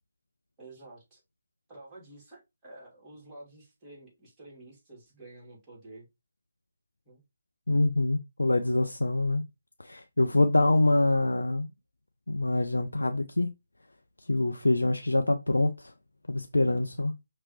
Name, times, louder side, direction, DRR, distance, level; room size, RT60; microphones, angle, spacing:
voice 1, 0.6-1.2 1.7-6.1 7.0-7.2 10.5-10.9, right 2 dB, 15° right, 2.7 m, -50 dB
voice 2, 7.7-9.4 9.8-11.7 12.3-13.5 14.3-15.9 16.3-17.1, left 2 dB, 85° left, 0.4 m, -25 dB
5.2 x 3.0 x 3.0 m
figure-of-eight pair, 145°, 0 cm